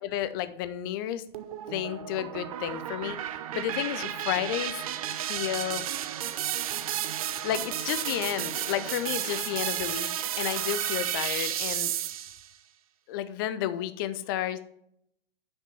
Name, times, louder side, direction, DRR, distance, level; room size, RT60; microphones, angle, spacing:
voice 1, 0.0-1.2 1.7-3.2 3.5-4.9 5.2-5.8 7.4-11.9 13.1-14.6, left 12 dB, 25° left, 13 dB, 0.5 m, -32 dB
sound 1, 1.3-12.5, right 11 dB, 35° right, 0.6 m, -32 dB
7.4 x 6.2 x 7.0 m, 0.75 s
figure-of-eight pair, 120°, 30 cm